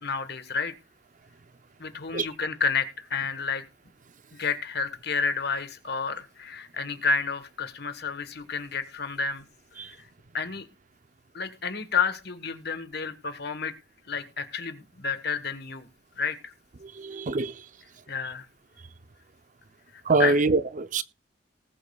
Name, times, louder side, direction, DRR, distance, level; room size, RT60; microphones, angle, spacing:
voice 1, 0.0-0.7 1.8-3.6 4.3-9.4 9.8-10.1 10.3-10.6 11.3-13.7 14.1-15.9 16.2-16.5 18.1-18.5 20.2-20.4, left 5 dB, 65° left, 1.3 m, -30 dB
voice 2, 16.8-17.5 20.1-21.0, right 3 dB, 45° right, 0.6 m, -24 dB
19.5 x 8.5 x 2.3 m
head